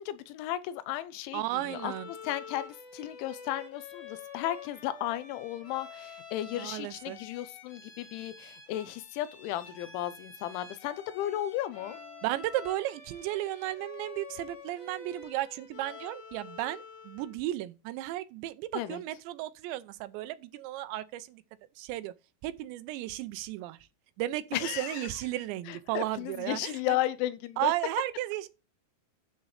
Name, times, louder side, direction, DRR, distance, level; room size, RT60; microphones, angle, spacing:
voice 1, 0.0-1.9 2.2-12.0 18.7-19.0 24.5-25.1 25.7-27.7, left 14 dB, 90° left, 3.2 m, -34 dB
voice 2, 1.3-2.1 6.6-7.2 12.2-21.4 21.8-22.1 22.4-23.8 24.2-26.8 27.6-28.5, right 15 dB, 80° right, 2.8 m, -34 dB
Bowed string instrument, 1.6-17.4, left 5 dB, 45° left, 5.0 m, -48 dB
12.0 x 6.0 x 3.2 m
omnidirectional pair, 5.3 m